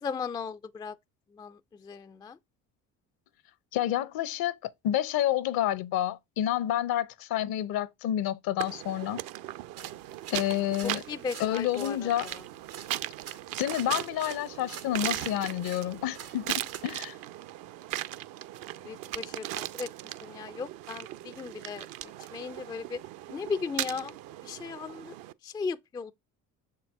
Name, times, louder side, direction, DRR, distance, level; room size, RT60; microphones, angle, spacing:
voice 1, 0.0-1.0 1.3-2.4 10.8-12.4 18.8-19.9 20.2-23.0 23.3-25.1 25.4-26.1, left 5 dB, 10° left, 0.3 m, -37 dB
voice 2, 3.7-9.2 10.3-11.0 11.4-12.3 13.6-17.2, left 12 dB, 55° left, 0.7 m, -29 dB
sound 1, 8.6-25.3, right 14 dB, 50° right, 0.5 m, -38 dB
sound 2, 9.8-16.9, right 9 dB, 85° right, 1.1 m, -48 dB
6.9 x 4.6 x 3.5 m
hypercardioid pair, 55°, 43 cm